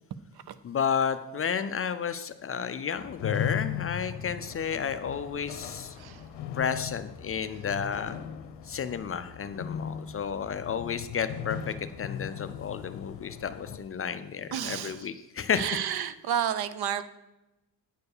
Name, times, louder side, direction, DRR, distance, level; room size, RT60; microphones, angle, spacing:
voice 1, 0.6-6.0 6.6-8.1 8.6-15.8, left 7 dB, 35° left, 11 dB, 0.4 m, -32 dB
sound 1, 3.0-13.8, left 8 dB, 80° left, 0.7 m, -38 dB
voice 2, 5.9-6.3 14.5-15.1 15.5-17.0, right 9 dB, 65° right, 14 dB, 0.6 m, -31 dB
9.5 x 4.6 x 6.6 m, 0.97 s
cardioid pair, 130°, 42 cm